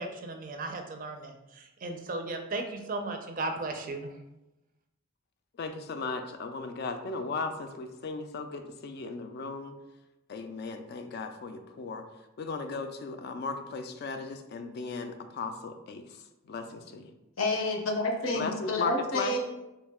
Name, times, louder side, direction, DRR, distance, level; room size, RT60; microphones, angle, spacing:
voice 1, 0.0-4.1, right 2 dB, 40° right, 5 dB, 0.4 m, -36 dB
voice 2, 5.6-9.7 10.3-12.1 12.4-17.1 18.3-19.4, left 4 dB, 50° left, 7 dB, 0.3 m, -36 dB
voice 3, 17.4-19.4, left 2 dB, 80° left, 2 dB, 0.7 m, -29 dB
3.0 x 2.7 x 3.5 m, 0.97 s
head